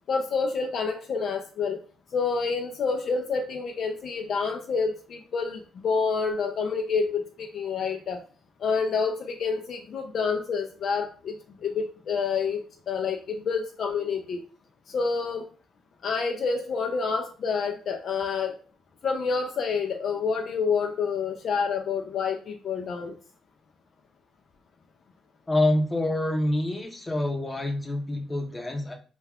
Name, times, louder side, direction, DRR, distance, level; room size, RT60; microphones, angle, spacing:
voice 1, 0.1-1.8 2.1-8.2 8.6-11.4 11.6-14.4 14.9-15.5 16.0-18.5 19.0-23.2, left 5 dB, 60° left, 4 dB, 0.3 m, -28 dB
voice 2, 25.5-28.9, left 1 dB, 20° left, 3 dB, 0.6 m, -26 dB
2.2 x 2.2 x 3.4 m, 0.38 s
cardioid pair, 90°, 0 cm